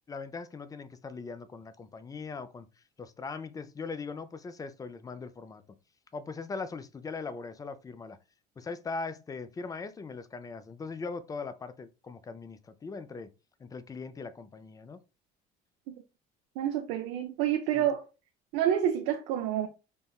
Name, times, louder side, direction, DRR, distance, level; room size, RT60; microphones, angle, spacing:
voice 1, 0.1-2.7 3.0-5.6 6.1-8.2 8.6-13.3 13.6-15.0 17.7-17.9, left 4 dB, 20° left, 0.4 m, -40 dB
voice 2, 16.6-18.0 18.5-19.7, right 10 dB, 80° right, 0.5 m, -28 dB
5.3 x 2.1 x 2.3 m
supercardioid pair, 85°, 19 cm